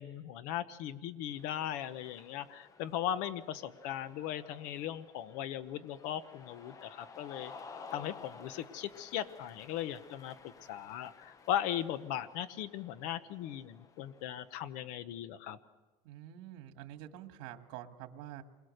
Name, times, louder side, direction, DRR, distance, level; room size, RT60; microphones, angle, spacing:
voice 1, 0.0-7.5 7.9-10.3 10.7-15.6, left 11 dB, 75° left, 12 dB, 1.0 m, -38 dB
Cheering, 1.3-14.7, left 5 dB, 25° left, 0.9 m, -54 dB
voice 2, 16.1-18.4, right 12 dB, 85° right, 6 dB, 1.9 m, -47 dB
27.5 x 22.0 x 6.6 m, 1.2 s
cardioid pair, 160°, 13 cm